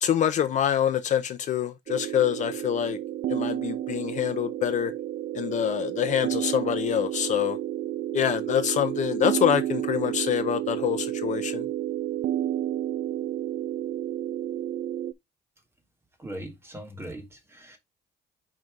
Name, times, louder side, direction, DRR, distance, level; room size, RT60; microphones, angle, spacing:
voice 1, 0.0-3.0 3.3-4.9 5.3-7.6 8.1-11.7, left 10 dB, 45° left, 0.7 m, -26 dB
sound 1, 1.9-15.1, right 12 dB, 50° right, 0.4 m, -31 dB
voice 2, 16.2-17.8, right 1 dB, 15° right, 1.2 m, -40 dB
5.0 x 4.1 x 4.6 m
cardioid pair, 180°, 18 cm